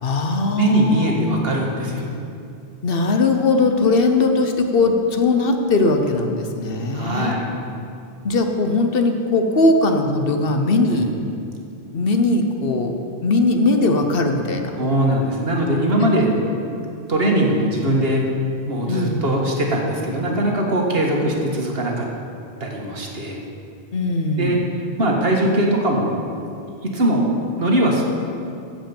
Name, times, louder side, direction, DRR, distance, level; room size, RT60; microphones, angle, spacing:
voice 1, 0.0-1.1 2.8-7.4 8.2-11.1 11.9-14.8 18.9-19.2 23.9-24.6, left 3 dB, 60° left, 5 dB, 1.1 m, -19 dB
voice 2, 0.6-2.1 6.9-7.5 10.9-11.0 14.8-16.3 17.1-18.3 18.7-22.1 22.6-23.4 24.4-24.6 25.0-26.1 26.8-27.3 27.6-28.0, right 1 dB, 65° right, -1 dB, 1.8 m, -20 dB
15.0 x 5.2 x 7.1 m, 2.5 s
omnidirectional pair, 1.1 m